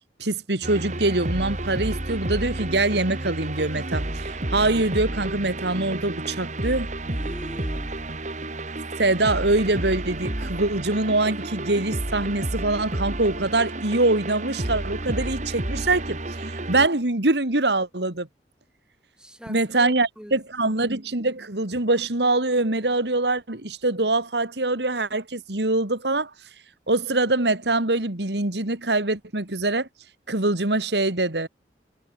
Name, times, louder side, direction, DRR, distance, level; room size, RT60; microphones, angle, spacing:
voice 1, 0.2-6.9 9.0-18.3 19.5-26.3 26.9-29.9 30.3-31.5, right 2 dB, 75° right, 2.6 m, -24 dB
sound 1, 0.6-16.9, right 1 dB, 45° right, 2.5 m, -31 dB
voice 2, 7.1-8.0 19.2-20.8, equal, 5° right, 7.0 m, -42 dB
head